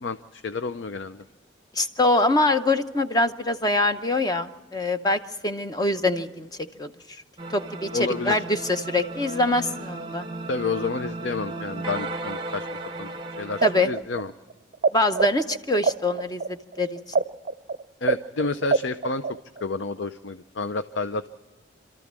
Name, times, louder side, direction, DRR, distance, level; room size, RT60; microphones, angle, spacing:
voice 1, 0.0-1.2 7.9-8.4 10.5-12.7 13.0-13.1 13.4-14.3 18.0-19.2 19.6-21.3, left 3 dB, 75° left, 11 dB, 0.6 m, -30 dB
voice 2, 1.7-6.5 6.8-6.9 7.5-10.3 13.6-13.9 14.9-17.0, left 2 dB, 20° left, 8 dB, 0.7 m, -24 dB
sound 1, 7.4-13.9, right 2 dB, 25° right, 0.9 m, -35 dB
sound 2, 13.5-14.9 15.1-19.6, right 4 dB, 45° right, 0.5 m, -24 dB
27.0 x 13.5 x 7.4 m, 1.3 s
head